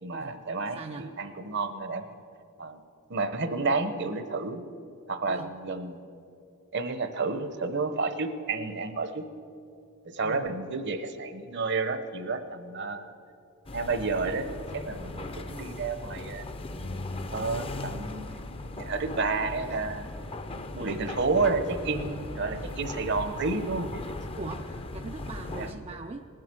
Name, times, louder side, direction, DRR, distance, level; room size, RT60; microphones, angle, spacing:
voice 1, 0.0-2.0 2.6-2.8 3.1-4.6 5.1-6.1 6.7-9.3 10.0-13.1 13.7-16.5 17.3-18.4 18.7-20.1 20.7-24.0 25.6-25.7, right 3 dB, 55° right, 10 dB, 0.9 m, -30 dB
voice 2, 0.7-1.1 5.3-5.5 10.2-10.5 20.8-21.1 24.4-26.4, right 3 dB, 25° right, 4 dB, 0.4 m, -41 dB
sound 1, 13.7-25.7, left 2 dB, 25° left, 0.6 m, -38 dB
19.0 x 7.6 x 7.6 m, 2.5 s
head